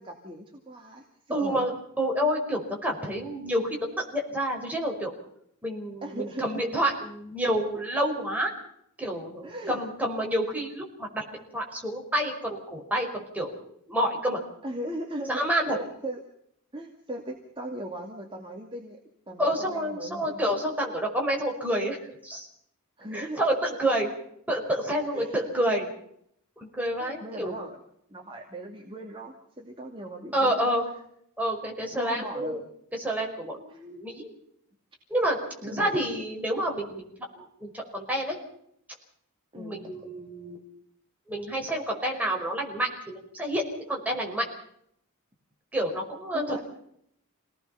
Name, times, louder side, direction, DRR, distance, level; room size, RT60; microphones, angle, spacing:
voice 1, 0.0-1.6 6.0-6.5 9.4-9.8 14.6-16.2 16.7-19.0 19.3-20.4 23.0-23.4 25.0-25.5 27.0-27.8 28.1-30.8 32.0-32.6 33.7-33.9 35.6-35.9 39.5-39.9 46.3-46.6, right 1 dB, 25° right, 1 dB, 2.4 m, -38 dB
voice 2, 1.3-5.1 5.6-8.5 9.0-11.2 11.5-13.5 13.9-14.4 15.3-15.8 19.4-22.0 22.2-22.5 23.1-24.1 24.5-25.9 26.6-27.6 30.3-30.8 31.4-32.6 33.0-34.3 35.1-37.1 37.3-38.4 39.5-40.6 41.3-43.6 43.9-44.4 45.7-46.6, equal, 5° right, 0 dB, 5.2 m, -28 dB
28.0 x 18.5 x 5.7 m, 0.72 s
head